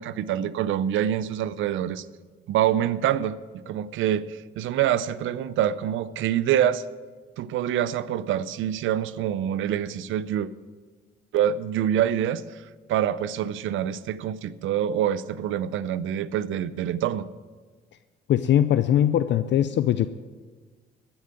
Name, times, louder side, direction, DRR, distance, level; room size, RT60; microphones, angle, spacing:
voice 1, 0.0-2.1 2.5-3.3 3.7-6.8 7.4-10.5 11.3-17.3, right 10 dB, 80° right, 17 dB, 0.6 m, -26 dB
voice 2, 18.3-20.1, left 11 dB, 65° left, 12 dB, 0.5 m, -21 dB
15.0 x 7.1 x 8.9 m, 1.4 s
cardioid pair, 90°, 20 cm